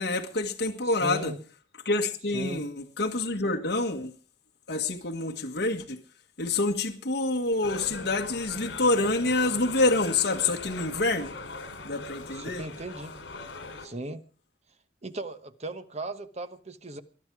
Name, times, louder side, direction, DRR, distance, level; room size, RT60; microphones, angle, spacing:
voice 1, 0.0-1.3 1.9-4.1 4.7-6.0 6.4-11.4 11.8-12.6, left 2 dB, 60° left, 1.8 m, -27 dB
voice 2, 1.0-1.4 2.3-2.6 12.3-13.1 13.8-14.2 15.0-17.0, right 1 dB, 35° right, 1.1 m, -37 dB
sound 1, 7.6-13.9, left 3 dB, 80° left, 3.2 m, -41 dB
21.0 x 11.5 x 4.8 m
head